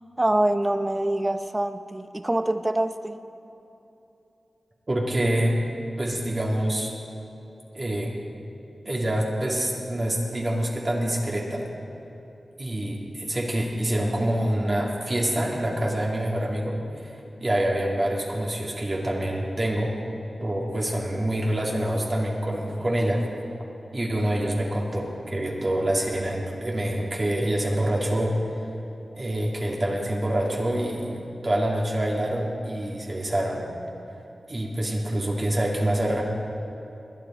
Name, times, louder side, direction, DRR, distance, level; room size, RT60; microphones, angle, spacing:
voice 1, 0.2-3.2, right 1 dB, 25° right, 10 dB, 0.7 m, -25 dB
voice 2, 4.9-5.6 6.0-6.9 7.7-8.1 8.8-11.6 12.6-16.8 17.0-17.1 17.4-20.0 20.4-23.3 23.9-28.3 29.2-33.6 34.5-36.2, right 1 dB, 40° right, -3 dB, 2.3 m, -26 dB
21.5 x 9.9 x 4.3 m, 2.9 s
cardioid pair, 55°, 0 cm